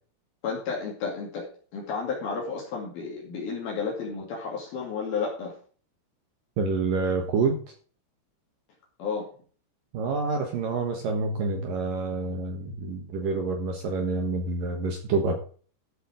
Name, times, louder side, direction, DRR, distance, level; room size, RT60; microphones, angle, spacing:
voice 1, 0.4-1.5 1.7-5.6 9.0-9.3, left 5 dB, 55° left, -2 dB, 4.1 m, -32 dB
voice 2, 6.6-7.6 9.9-15.4, right 4 dB, 60° right, 4 dB, 2.5 m, -27 dB
13.0 x 7.6 x 4.9 m, 0.42 s
omnidirectional pair, 5.3 m